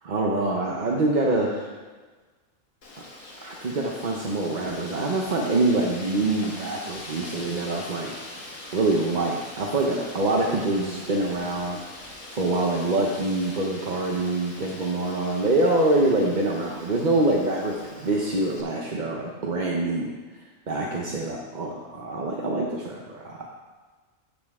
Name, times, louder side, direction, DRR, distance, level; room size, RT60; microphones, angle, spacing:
voice 1, 0.0-1.7 3.4-8.1 8.7-11.8 12.3-20.1 20.7-23.5, right 2 dB, 40° right, -2 dB, 0.8 m, -25 dB
Wind, 2.8-18.6, left 2 dB, 70° left, 1.8 m, -42 dB
11.5 x 7.6 x 3.6 m, 1.4 s
omnidirectional pair, 1.4 m